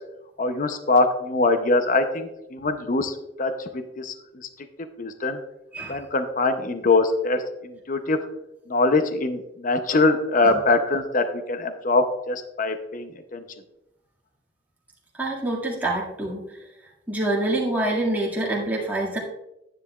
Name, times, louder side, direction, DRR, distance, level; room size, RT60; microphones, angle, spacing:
voice 1, 0.4-4.5 5.0-5.4 5.9-8.2 8.7-13.4, left 3 dB, 45° left, 8 dB, 0.7 m, -23 dB
voice 2, 15.1-16.6 17.1-19.2, right 1 dB, 10° right, -5 dB, 2.0 m, -26 dB
9.9 x 9.9 x 2.4 m, 0.89 s
head